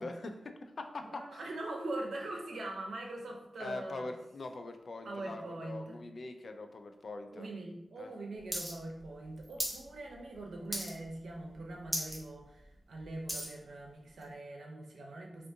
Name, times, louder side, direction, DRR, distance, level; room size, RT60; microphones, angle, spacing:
voice 1, 0.0-1.4 3.6-7.5 8.0-8.1, left 2 dB, 55° left, 6 dB, 0.3 m, -43 dB
voice 2, 1.1-4.1 5.0-6.0 7.3-15.5, right 2 dB, 85° right, 1 dB, 0.6 m, -42 dB
sound 1, 8.5-8.7 9.0-9.8 10.2-10.4 10.7-11.2 11.5-11.6 11.8-12.2 12.6-13.6 14.2-14.3, equal, 10° right, 0.7 m, -36 dB
3.4 x 2.5 x 2.7 m, 0.91 s
wide cardioid pair, 120°, 0 cm